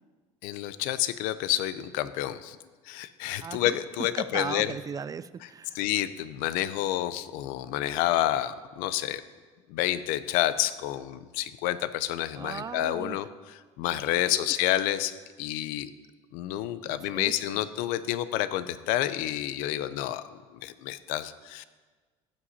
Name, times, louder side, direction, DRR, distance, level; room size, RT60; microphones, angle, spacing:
voice 1, 0.4-2.6 2.9-4.7 5.7-9.2 9.7-15.9 16.3-20.3 20.5-21.6, left 13 dB, 70° left, 14 dB, 0.6 m, -29 dB
voice 2, 3.4-3.8 4.2-5.8 12.3-13.2 13.9-14.5 16.8-17.6, right 6 dB, 25° right, 16 dB, 0.4 m, -38 dB
14.5 x 8.4 x 2.8 m, 1.4 s
supercardioid pair, 90°, 15 cm